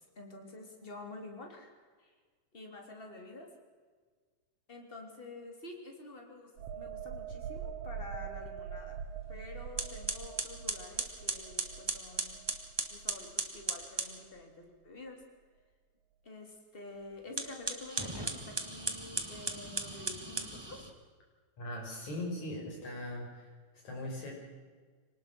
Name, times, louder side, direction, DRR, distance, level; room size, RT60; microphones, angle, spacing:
voice 1, 0.0-1.7 2.0-2.1 2.5-3.5 4.7-9.0 9.3-12.4 12.9-15.2 16.2-20.9, left 2 dB, 20° left, 2 dB, 3.2 m, -48 dB
sound 1, 6.6-14.0 14.4-14.6, right 8 dB, 80° right, 2.4 m, -44 dB
sound 2, 9.2-9.4 9.8-14.2 17.2-20.9, right 2 dB, 10° right, 1.3 m, -37 dB
voice 2, 21.6-23.5 23.8-24.3, left 1 dB, 75° left, -1 dB, 6.7 m, -39 dB
25.0 x 19.5 x 6.1 m, 1.5 s
omnidirectional pair, 3.3 m